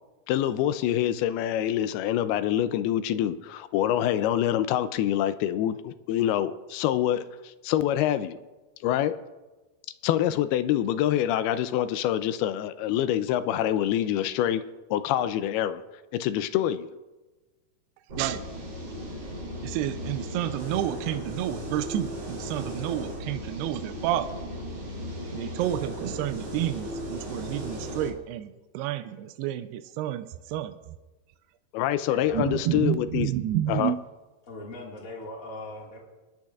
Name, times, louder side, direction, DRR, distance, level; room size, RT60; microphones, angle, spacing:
voice 1, 0.3-8.4 8.8-9.2 10.0-14.6 14.9-15.8 16.1-16.9 31.7-33.3 33.7-33.9, left 11 dB, 80° left, 12 dB, 2.4 m, -26 dB
sound 1, 18.1-28.1, equal, 40° right, 4.1 m, -36 dB
voice 2, 19.6-24.3 25.3-30.8 32.3-34.0, right 12 dB, 85° right, 8 dB, 2.6 m, -30 dB
voice 3, 32.1-32.5 34.4-36.0, left 1 dB, 40° left, -3 dB, 1.1 m, -39 dB
26.5 x 10.5 x 2.4 m, 1.2 s
omnidirectional pair, 4.7 m